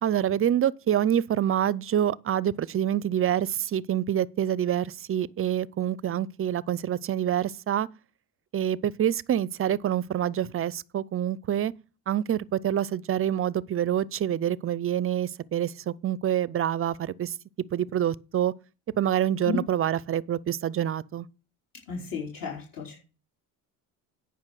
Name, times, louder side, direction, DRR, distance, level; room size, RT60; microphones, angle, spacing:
voice 1, 0.0-7.9 8.5-11.7 12.1-17.3 17.7-18.5 19.0-21.3, right 10 dB, 35° right, 0.5 m, -26 dB
voice 2, 21.9-23.0, left 6 dB, 50° left, 4.3 m, -33 dB
9.7 x 5.6 x 6.4 m
supercardioid pair, 85°, 42 cm